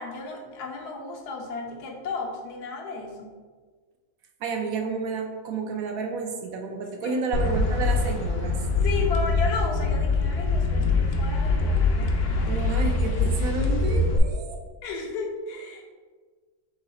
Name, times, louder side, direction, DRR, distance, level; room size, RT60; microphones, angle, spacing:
voice 1, 0.0-3.4 7.0-7.2 8.8-13.3 14.8-15.9, left 3 dB, 80° left, 0 dB, 1.3 m, -34 dB
voice 2, 4.4-8.6 12.5-14.6, right 4 dB, 70° right, 3 dB, 1.0 m, -30 dB
sound 1, 7.3-14.2, left 3 dB, 65° left, 0.8 m, -24 dB
3.7 x 3.1 x 4.1 m, 1.5 s
omnidirectional pair, 1.7 m